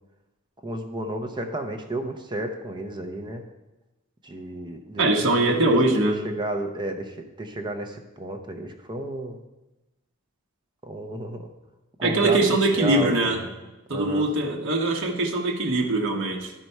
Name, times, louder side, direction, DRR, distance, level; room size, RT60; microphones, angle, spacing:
voice 1, 0.6-3.4 4.2-7.1 7.4-9.4 10.8-11.5 12.0-12.4 12.7-13.5 13.9-14.3, right 1 dB, 20° right, 4 dB, 0.7 m, -32 dB
voice 2, 5.0-6.2 12.0-13.4 13.9-16.5, right 2 dB, 60° right, 1 dB, 1.1 m, -22 dB
11.5 x 4.6 x 5.4 m, 1.0 s
head